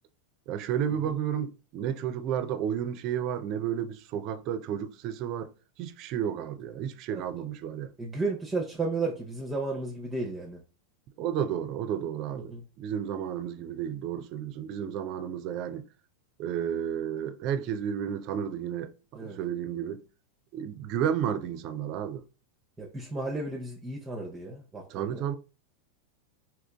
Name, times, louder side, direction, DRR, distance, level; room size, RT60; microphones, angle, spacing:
voice 1, 0.5-5.5 5.8-7.9 11.2-15.8 16.4-18.9 19.2-20.0 20.5-22.2 24.9-25.4, right 9 dB, 50° right, 0.4 m, -32 dB
voice 2, 7.1-7.4 8.0-10.6 12.3-12.6 19.1-19.4 22.8-25.3, right 3 dB, 15° right, 0.7 m, -34 dB
3.7 x 2.8 x 2.3 m
hypercardioid pair, 100°, 0 cm